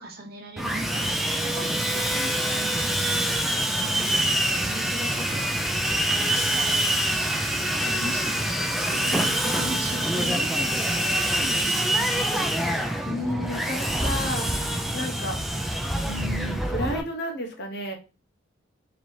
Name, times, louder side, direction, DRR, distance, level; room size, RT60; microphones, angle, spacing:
voice 1, 0.0-9.2 9.4-12.0, right 1 dB, 50° right, 2 dB, 0.9 m, -40 dB
Sawing, 0.6-17.0, right 1 dB, ahead, 0.4 m, -25 dB
voice 2, 12.7-14.5 14.9-15.7 16.1-18.0, left 1 dB, 60° left, 3 dB, 0.9 m, -32 dB
3.9 x 2.8 x 3.1 m, 0.31 s
head